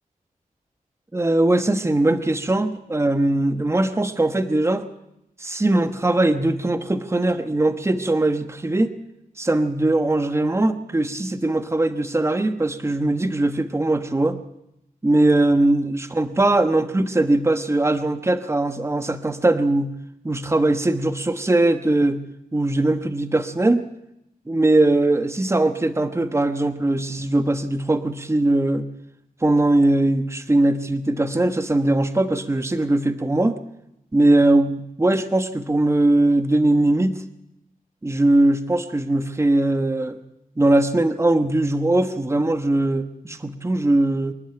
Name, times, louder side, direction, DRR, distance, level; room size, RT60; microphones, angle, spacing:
voice 1, 1.1-4.9 5.4-8.9 9.4-14.4 15.0-19.9 20.2-22.2 22.5-23.8 24.5-28.9 29.4-33.6 34.1-37.2 38.0-40.2 40.6-44.3, right 2 dB, 20° right, 9 dB, 1.2 m, -20 dB
25.5 x 11.0 x 9.1 m, 0.84 s
wide cardioid pair, 130°, 15 cm